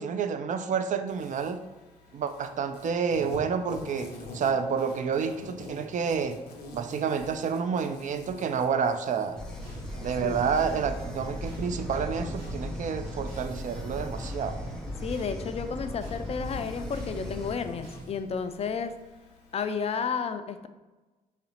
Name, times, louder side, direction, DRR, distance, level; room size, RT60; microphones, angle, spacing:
voice 1, 0.0-1.6 2.1-6.4 6.7-9.4 10.0-14.6, right 6 dB, 40° right, 9 dB, 0.4 m, -29 dB
Insect, 1.1-20.0, left 2 dB, 80° left, 0.6 m, -47 dB
sound 1, 9.4-17.6, left 1 dB, 5° left, 0.7 m, -37 dB
sound 2, 9.5-19.4, right 1 dB, 75° right, 1.1 m, -46 dB
voice 2, 15.0-18.9 19.5-20.7, left 6 dB, 30° left, 9 dB, 0.4 m, -32 dB
4.9 x 3.1 x 2.9 m, 1.2 s
figure-of-eight pair, 40°, 20 cm